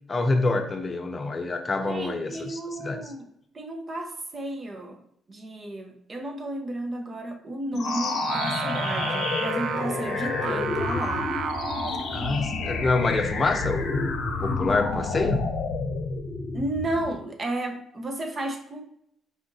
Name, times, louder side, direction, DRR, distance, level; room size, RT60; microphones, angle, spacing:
voice 1, 0.1-3.0 12.1-14.0 14.4-15.5, left 3 dB, 30° left, 5 dB, 0.7 m, -26 dB
voice 2, 1.9-3.3 3.5-5.0 5.3-11.3 16.5-18.8, right 1 dB, 35° right, 4 dB, 0.8 m, -33 dB
sound 1, 7.7-17.2, left 4 dB, 75° left, 0.7 m, -29 dB
Singing, 7.8-14.6, right 8 dB, 70° right, 0.3 m, -34 dB
4.9 x 2.5 x 3.8 m, 0.70 s
cardioid pair, 90°, 0 cm